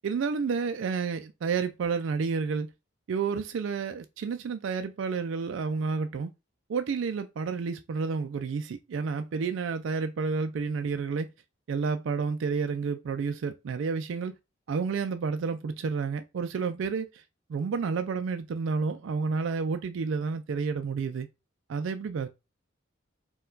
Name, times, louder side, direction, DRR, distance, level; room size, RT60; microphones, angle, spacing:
voice 1, 0.0-2.7 3.1-6.3 6.7-11.3 11.7-14.3 14.7-17.2 17.5-21.3 21.7-22.3, right 5 dB, 70° right, 0.3 m, -30 dB
4.4 x 2.3 x 3.8 m
head